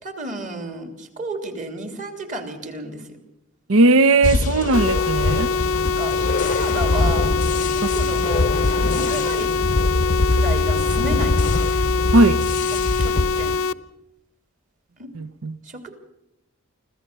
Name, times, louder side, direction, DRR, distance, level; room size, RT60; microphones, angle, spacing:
voice 1, 0.0-3.2 5.8-6.2 6.4-7.4 7.8-9.5 10.3-11.4 12.7-13.6 15.0-15.1 15.6-15.9, right 1 dB, 35° right, 6 dB, 3.2 m, -32 dB
voice 2, 3.7-5.5 12.1-12.4 15.2-15.5, right 2 dB, 70° right, 13 dB, 0.7 m, -17 dB
sound 1, 4.2-13.6, left 2 dB, 35° left, 0.7 m, -23 dB
sound 2, 4.7-13.7, left 5 dB, 75° left, 0.7 m, -24 dB
25.0 x 15.5 x 6.8 m, 0.89 s
head